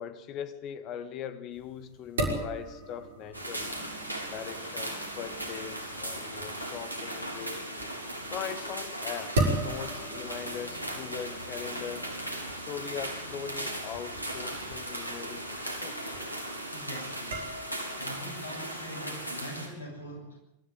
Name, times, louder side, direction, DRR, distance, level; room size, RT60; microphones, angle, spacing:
voice 1, 0.0-3.7 4.3-7.7 8.3-12.1 12.6-16.0, left 9 dB, 35° left, 1.8 m, -40 dB
sound 1, 1.5-18.3, right 1 dB, 60° right, 5.9 m, -38 dB
sound 2, 3.3-19.7, right 1 dB, 90° left, 4.0 m, -37 dB
voice 2, 16.7-17.6 18.0-20.4, equal, 70° left, 7.7 m, -42 dB
24.0 x 13.5 x 9.2 m
figure-of-eight pair, 90°, 0 cm